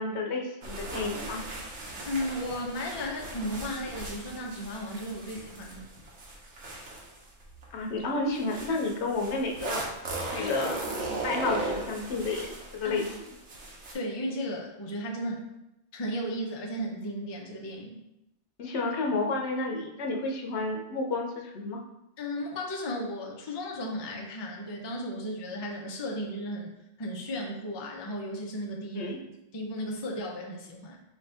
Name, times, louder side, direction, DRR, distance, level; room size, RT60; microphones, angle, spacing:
voice 1, 0.0-1.4 7.7-9.8 10.3-10.8 11.2-13.3 18.6-21.8 28.9-29.2, left 3 dB, 75° left, 1 dB, 1.0 m, -31 dB
sound 1, 0.6-7.6 8.3-13.9, right 2 dB, 85° right, 1.2 m, -37 dB
voice 2, 2.1-5.8 10.4-10.5 10.9-11.3 12.8-13.0 13.9-15.5 15.9-18.0 22.2-26.7 27.0-29.1 29.5-31.0, equal, 30° left, 0 dB, 0.5 m, -35 dB
4.9 x 2.7 x 3.3 m, 0.89 s
omnidirectional pair, 1.2 m